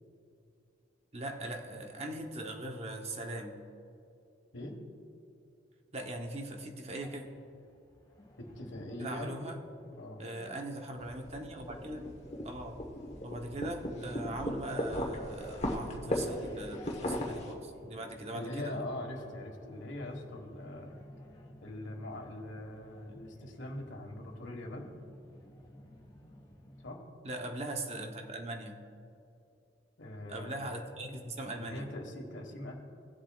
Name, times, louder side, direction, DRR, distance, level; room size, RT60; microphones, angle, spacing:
voice 1, 1.1-3.6 5.9-7.2 9.0-9.6 10.2-12.1 12.4-12.8 13.2-18.8 27.2-28.8 30.3-31.9, right 1 dB, 35° right, 3 dB, 0.9 m, -40 dB
sound 1, 7.0-26.9, left 1 dB, 20° left, 1.7 m, -54 dB
voice 2, 8.4-9.5 10.0-10.2 18.3-21.0 21.6-24.9 26.8-27.0 30.0-30.6 31.6-32.8, left 1 dB, 75° left, 2 dB, 1.5 m, -42 dB
sound 2, 11.0-17.5, left 1 dB, 35° left, 1.1 m, -37 dB
18.5 x 7.4 x 2.4 m, 2.6 s
head